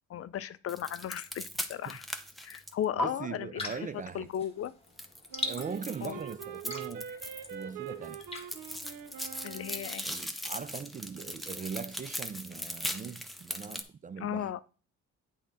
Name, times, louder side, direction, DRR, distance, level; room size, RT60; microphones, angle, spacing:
voice 1, 0.1-2.0 2.4-3.8 4.1-4.7 6.0-6.2 9.4-10.1 14.2-14.6, left 10 dB, 50° left, 0.5 m, -36 dB
sound 1, 0.7-3.0 5.0-7.6 7.9-13.8, equal, ahead, 0.8 m, -39 dB
voice 2, 3.0-4.3 5.4-7.1 7.5-8.2 10.0-14.5, right 6 dB, 25° right, 0.4 m, -40 dB
sound 2, 3.6-9.9, left 3 dB, 20° left, 1.6 m, -43 dB
Wind instrument woodwind instrument, 5.3-10.0, right 8 dB, 90° right, 0.9 m, -44 dB
8.3 x 3.7 x 5.4 m
cardioid pair, 90°, 30 cm